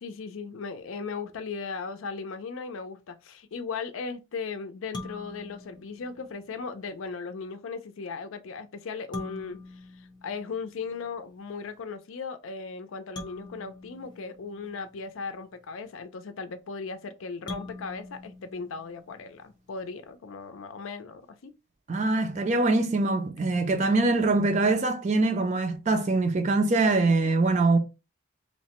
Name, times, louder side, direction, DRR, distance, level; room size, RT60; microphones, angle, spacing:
voice 1, 0.0-21.5, left 4 dB, 80° left, 0.4 m, -37 dB
sound 1, 4.9-6.6 9.1-11.1 13.2-15.3 17.5-19.5, left 2 dB, 20° left, 0.5 m, -44 dB
voice 2, 21.9-27.8, right 3 dB, 35° right, 0.4 m, -23 dB
2.9 x 2.1 x 2.9 m
head